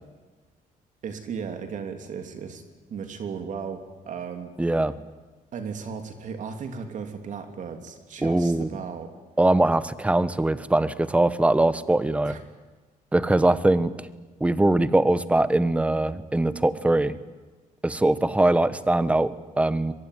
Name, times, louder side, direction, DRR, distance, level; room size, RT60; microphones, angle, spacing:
voice 1, 1.0-2.6 2.9-4.5 5.5-9.1 12.2-12.4, right 6 dB, 60° right, 6 dB, 3.0 m, -35 dB
voice 2, 4.6-5.0 8.2-8.8 9.4-12.4 13.1-13.9 14.4-17.2 17.8-19.9, right 2 dB, 10° right, 14 dB, 1.1 m, -22 dB
23.0 x 23.0 x 9.6 m, 1.3 s
cardioid pair, 120°, 15 cm